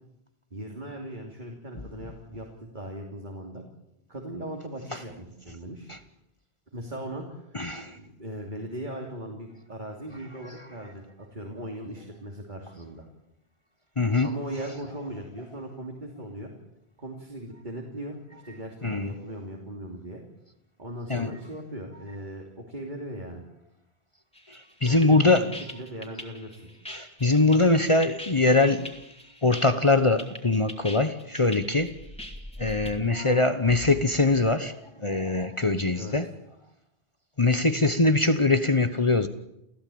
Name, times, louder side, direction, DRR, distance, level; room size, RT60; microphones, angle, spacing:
voice 1, 0.5-3.6 4.1-5.9 6.7-7.4 7.9-13.0 14.2-16.5 17.0-18.2 18.4-20.2 20.8-23.4 24.8-25.4 25.7-26.6 35.9-36.2, right 1 dB, 45° right, 3.3 m, -38 dB
voice 2, 7.5-8.0 10.4-10.5 14.0-14.3 18.8-19.1 21.1-21.3 24.5-25.5 26.9-29.0 29.4-32.0 32.6-36.3 37.4-39.3, left 2 dB, 30° left, 1.1 m, -23 dB
sound 1, 24.3-32.9, equal, 5° left, 3.0 m, -42 dB
29.5 x 16.0 x 8.7 m
omnidirectional pair, 1.1 m